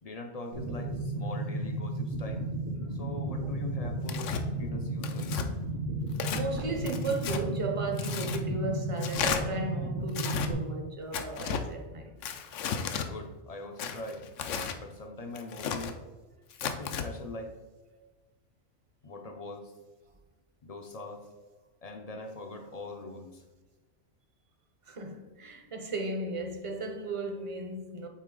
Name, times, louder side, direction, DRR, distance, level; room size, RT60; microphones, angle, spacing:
voice 1, 0.0-2.5 2.9-5.4 13.0-16.0 16.6-17.5 19.0-19.7 20.6-21.3 21.8-23.4, left 2 dB, 45° left, 0.5 m, -42 dB
sound 1, 0.5-10.5, right 1 dB, 75° right, 1.6 m, -34 dB
Tearing, 4.1-4.4 5.0-5.5 6.1-6.4 6.9-7.4 8.0-8.4 9.0-9.4 10.1-10.5 11.1-11.6 12.2-13.1 13.8-14.8 15.3-15.9 16.5-17.1, left 7 dB, 80° left, 1.0 m, -34 dB
voice 2, 6.3-12.1 18.0-18.1 24.9-28.1, right 2 dB, 30° right, 0.7 m, -35 dB
8.4 x 4.1 x 3.7 m
omnidirectional pair, 1.3 m